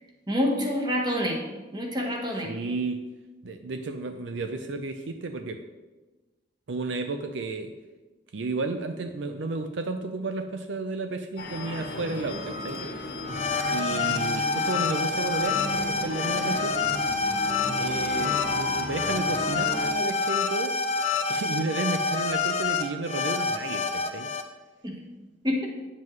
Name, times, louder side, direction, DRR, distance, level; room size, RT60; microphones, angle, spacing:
voice 1, 0.3-1.4 1.7-2.5 24.8-25.0 25.4-25.6, equal, 25° right, 0 dB, 1.3 m, -27 dB
voice 2, 2.4-3.1 3.4-5.6 6.7-7.7 8.3-12.9 13.7-16.7 17.8-20.8 21.3-24.3, right 3 dB, 70° right, 7 dB, 0.5 m, -32 dB
sound 1, 11.4-19.9, left 2 dB, 55° left, 1.2 m, -35 dB
sound 2, 13.3-24.4, left 4 dB, 35° left, 0.6 m, -27 dB
9.0 x 7.5 x 3.2 m, 1.2 s
head